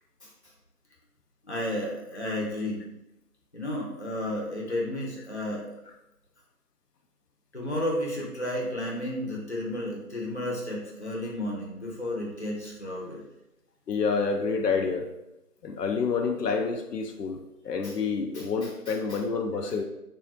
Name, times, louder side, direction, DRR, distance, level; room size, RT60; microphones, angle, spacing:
voice 1, 1.5-2.9 3.5-5.7 7.5-13.2 17.8-17.9 18.3-18.5 18.9-19.0, left 1 dB, 45° left, -3 dB, 0.7 m, -32 dB
voice 2, 13.9-15.1 15.6-17.4 17.6-19.8, left 5 dB, 85° left, 3 dB, 0.6 m, -28 dB
3.4 x 2.3 x 2.8 m, 0.89 s
figure-of-eight pair, 175°, 47 cm